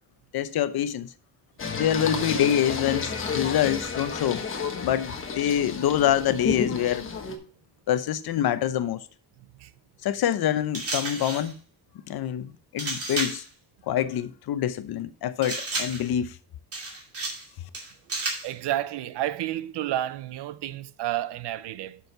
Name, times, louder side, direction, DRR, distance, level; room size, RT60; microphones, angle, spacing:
voice 1, 0.3-1.1 1.8-4.4 4.7-7.0 7.9-9.0 10.0-11.6 12.1-13.4 13.9-16.3, left 10 dB, 65° left, 0.8 m, -26 dB
Singing, 1.6-7.4, left 5 dB, 30° left, 1.2 m, -31 dB
sound 1, 10.7-11.5 12.8-13.5 15.4-16.1 16.7-17.5 17.7-18.5, right 3 dB, 35° right, 2.5 m, -32 dB
voice 2, 18.4-22.0, right 13 dB, 85° right, 0.7 m, -30 dB
8.1 x 6.5 x 4.4 m
cardioid pair, 180°, 40 cm